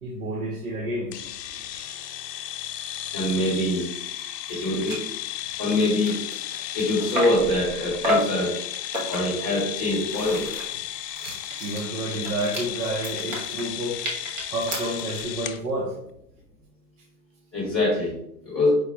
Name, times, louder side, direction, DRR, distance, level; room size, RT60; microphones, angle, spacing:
voice 1, 0.0-1.2 11.6-14.0 14.5-16.0, right 1 dB, 65° right, -1 dB, 0.9 m, -29 dB
sound 1, 1.1-15.6, left 12 dB, 75° left, 0.6 m, -34 dB
voice 2, 3.1-3.8 4.5-5.0 5.6-6.2 6.7-8.6 9.1-10.5 17.5-18.2 18.4-18.8, left 1 dB, 10° right, -11 dB, 0.4 m, -24 dB
sound 2, 4.2-4.3 4.5-4.6 4.9-5.1 5.5-7.5 8.0-8.4 8.9-9.4 9.9-15.3, equal, 30° right, 0.8 m, -31 dB
4.7 x 2.1 x 4.4 m, 0.77 s
hypercardioid pair, 165°, 49 cm